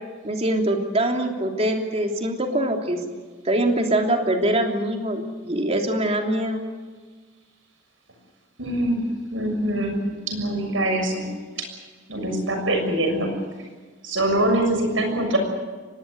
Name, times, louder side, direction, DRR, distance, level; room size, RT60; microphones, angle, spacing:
voice 1, 0.2-3.0 3.4-6.6, right 1 dB, 35° right, 3 dB, 3.1 m, -23 dB
voice 2, 8.6-10.0 10.3-11.3 12.1-13.3 14.0-15.4, right 1 dB, 90° right, 4 dB, 6.8 m, -23 dB
24.5 x 19.5 x 8.1 m, 1.4 s
head